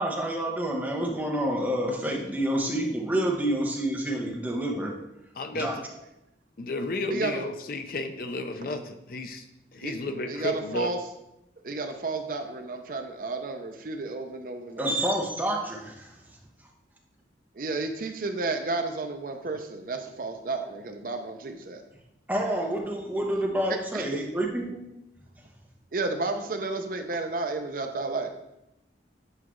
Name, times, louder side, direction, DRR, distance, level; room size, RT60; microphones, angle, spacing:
voice 1, 0.0-4.9 5.5-5.7 14.8-16.1 22.3-24.8, right 1 dB, 10° right, -2 dB, 0.9 m, -28 dB
voice 2, 5.4-5.7 6.6-9.4 9.7-10.9, left 2 dB, 50° left, 7 dB, 0.5 m, -32 dB
voice 3, 7.1-7.4 9.8-9.9 10.3-11.0 11.6-14.9 17.5-21.8 23.9-24.2 25.9-28.3, right 3 dB, 50° right, 6 dB, 0.5 m, -32 dB
8.0 x 4.8 x 3.1 m, 0.88 s
head